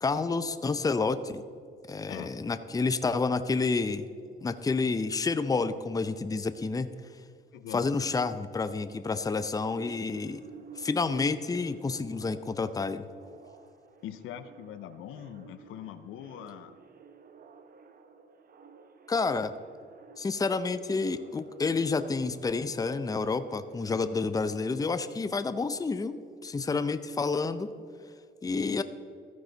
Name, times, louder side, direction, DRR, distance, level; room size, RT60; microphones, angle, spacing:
voice 1, 0.0-1.4 1.9-4.0 4.4-6.9 7.7-10.4 10.8-13.0 19.1-19.5 20.2-27.7 28.4-28.8, left 4 dB, 20° left, 12 dB, 0.5 m, -29 dB
voice 2, 2.0-2.3 7.5-7.8 14.0-16.8, left 10 dB, 90° left, 12 dB, 0.7 m, -42 dB
sound 1, 9.3-25.0, right 5 dB, 50° right, 1.0 m, -52 dB
13.5 x 9.5 x 4.0 m, 2.3 s
cardioid pair, 90°, 20 cm